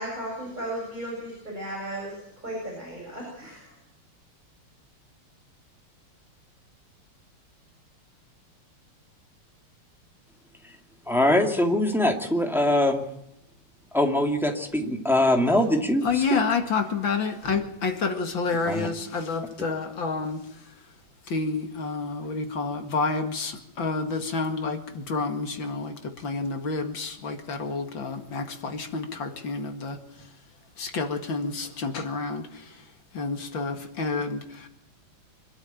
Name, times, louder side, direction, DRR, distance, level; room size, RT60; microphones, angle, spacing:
voice 1, 0.0-2.2 2.4-3.7, right 1 dB, 20° right, -3 dB, 7.6 m, -35 dB
voice 2, 11.1-13.0 13.9-16.4 18.6-18.9, left 1 dB, ahead, 2 dB, 2.0 m, -23 dB
voice 3, 16.0-20.4 21.3-30.0 30.8-32.4 33.1-34.7, left 4 dB, 60° left, 5 dB, 2.7 m, -29 dB
25.5 x 12.5 x 9.1 m, 0.82 s
omnidirectional pair, 2.4 m